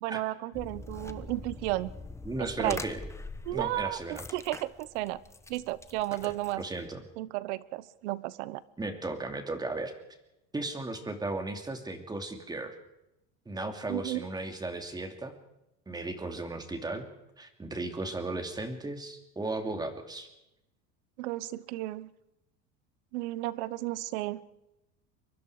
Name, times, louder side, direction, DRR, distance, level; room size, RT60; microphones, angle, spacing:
voice 1, 0.0-1.9 2.4-2.8 3.5-5.2 5.5-6.6 7.2-8.6 13.9-14.2 21.2-22.1 23.1-24.4, right 17 dB, 80° right, 18 dB, 1.1 m, -33 dB
sound 1, 0.5-6.9, left 3 dB, 10° left, 1.0 m, -44 dB
voice 2, 2.2-3.0 3.5-4.2 6.2-7.0 8.8-9.9 10.5-12.8 13.5-15.3 15.9-17.1 17.4-20.3, right 2 dB, 10° right, 6 dB, 2.7 m, -36 dB
23.5 x 23.0 x 4.9 m, 0.90 s
supercardioid pair, 135°, 33 cm